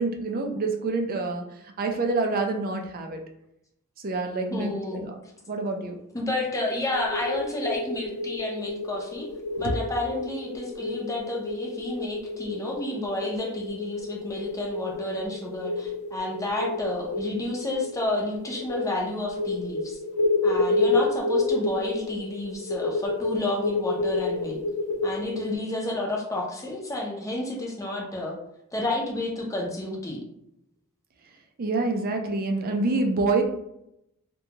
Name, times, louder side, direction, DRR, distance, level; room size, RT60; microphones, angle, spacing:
voice 1, 0.0-1.4 1.8-3.2 4.0-5.2 5.5-6.0 9.5-9.7 24.9-25.2 31.6-33.4, right 3 dB, 40° right, 4 dB, 0.4 m, -27 dB
voice 2, 4.5-5.1 6.1-9.3 9.6-20.0 20.4-24.6 25.0-28.4 28.7-30.3, left 1 dB, 15° left, -1 dB, 0.5 m, -31 dB
sound 1, 6.9-25.6, left 3 dB, 85° left, 0.4 m, -29 dB
2.7 x 2.2 x 2.8 m, 0.80 s
head